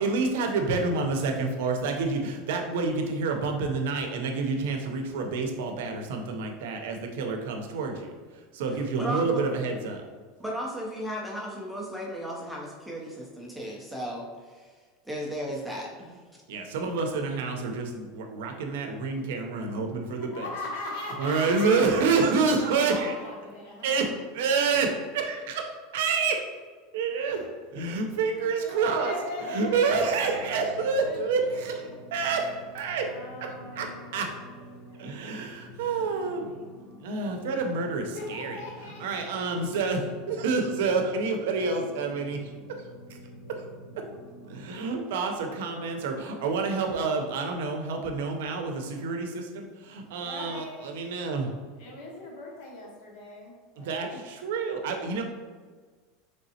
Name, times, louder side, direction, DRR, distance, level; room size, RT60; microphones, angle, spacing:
voice 1, 0.0-8.1 8.5-10.0 16.5-20.5 21.2-23.1 23.8-24.1 24.3-26.4 26.9-27.4 27.7-29.1 29.5-33.1 33.4-34.3 35.0-36.5 37.0-38.6 39.0-42.5 43.1-43.2 43.9-44.0 44.5-51.5 53.8-55.2, right 4 dB, 70° right, 4 dB, 0.6 m, -28 dB
voice 2, 8.7-9.4 10.4-14.7 15.0-16.2, equal, ahead, -3 dB, 0.4 m, -35 dB
voice 3, 20.2-21.8 22.5-24.1 27.2-27.4 27.7-27.8 28.2-30.6 31.0-32.0 33.0-35.4 35.8-36.8 38.1-39.6 44.5-44.7 50.2-51.0 51.8-54.0, left 2 dB, 60° left, -2 dB, 0.9 m, -41 dB
sound 1, 29.6-44.9, equal, 35° left, 0.9 m, -48 dB
4.0 x 3.3 x 2.7 m, 1.5 s
supercardioid pair, 175°, 0 cm